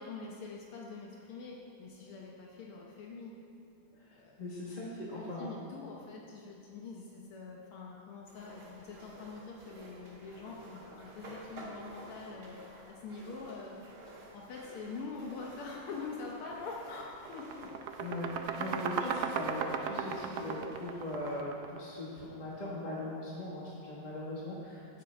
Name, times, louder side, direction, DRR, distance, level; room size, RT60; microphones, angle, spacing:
voice 1, 0.0-3.3 4.1-4.4 5.1-13.8 14.3-17.7, left 4 dB, 80° left, -2 dB, 1.9 m, -45 dB
voice 2, 4.4-5.5 18.0-25.0, left 1 dB, 25° left, -5 dB, 1.1 m, -40 dB
sound 1, 8.3-21.4, right 1 dB, 50° right, 2.3 m, -52 dB
sound 2, 16.4-16.6 16.9-21.9, right 6 dB, 70° right, 1.0 m, -36 dB
15.5 x 7.5 x 4.4 m, 2.8 s
omnidirectional pair, 2.4 m